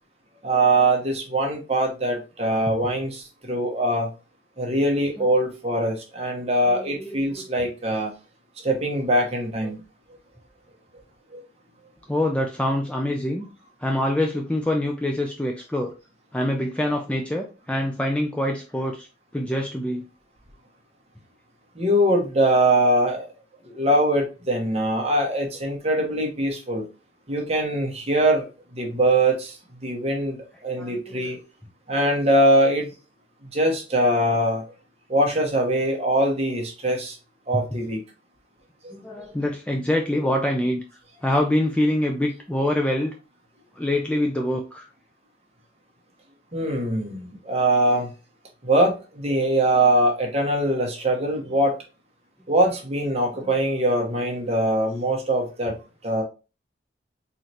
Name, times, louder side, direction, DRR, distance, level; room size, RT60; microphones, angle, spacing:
voice 1, 0.4-4.1 4.6-8.1 8.6-9.8 11.3-11.4 21.8-23.3 23.7-26.8 27.3-28.5 28.7-29.5 29.8-30.4 30.6-31.4 31.9-32.9 33.5-34.6 35.1-37.1 37.5-38.0 38.8-38.9 46.5-48.1 48.6-51.7 52.5-55.7 56.0-56.2, right 1 dB, 35° right, 0 dB, 1.0 m, -22 dB
voice 2, 6.7-7.4 12.1-13.5 13.8-15.9 16.3-19.1 19.3-20.0 30.8-31.3 37.5-37.6 38.9-40.8 41.2-43.1 43.8-44.9 53.4-53.5, left 1 dB, 5° left, 2 dB, 0.3 m, -25 dB
4.0 x 3.1 x 2.8 m, 0.31 s
head